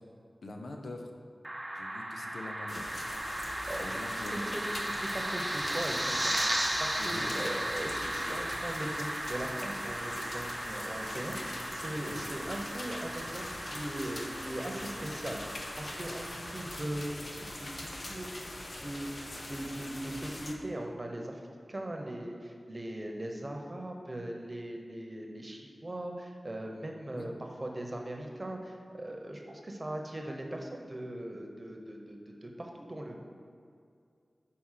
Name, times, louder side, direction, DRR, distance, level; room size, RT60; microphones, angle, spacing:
voice 1, 0.4-1.1 1.7-3.0 3.8-4.4 7.0-7.6 12.0-12.3 27.1-27.3, left 2 dB, 90° left, 2 dB, 0.6 m, -44 dB
sound 1, 1.4-16.8, right 1 dB, 20° right, 0.7 m, -36 dB
sound 2, 2.7-20.5, left 1 dB, 55° left, 0.8 m, -42 dB
voice 2, 3.7-4.0 4.3-18.3 18.8-21.4 21.7-27.3 27.6-33.2, right 1 dB, 35° right, 1 dB, 1.0 m, -40 dB
6.3 x 4.2 x 5.7 m, 2.3 s
wide cardioid pair, 50°, 0 cm